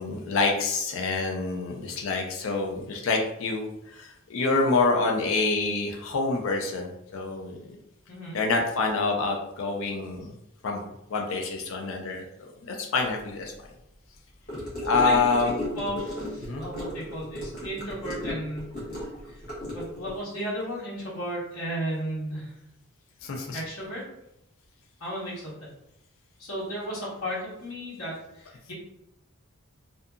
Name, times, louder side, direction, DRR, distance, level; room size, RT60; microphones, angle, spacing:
voice 1, 0.0-7.8 8.3-10.3 10.6-10.8 11.1-13.5 14.8-15.6 16.4-16.6 23.2-23.6, left 3 dB, 60° left, 2 dB, 0.4 m, -27 dB
Gurgling / Car passing by / Sink (filling or washing), 14.5-20.2, left 1 dB, 45° left, 1.0 m, -35 dB
voice 2, 15.0-18.7 19.3-19.4 19.7-22.5 23.5-24.0 25.0-25.5 26.4-28.7, equal, 80° left, -6 dB, 1.1 m, -34 dB
2.7 x 2.4 x 2.3 m, 0.85 s
head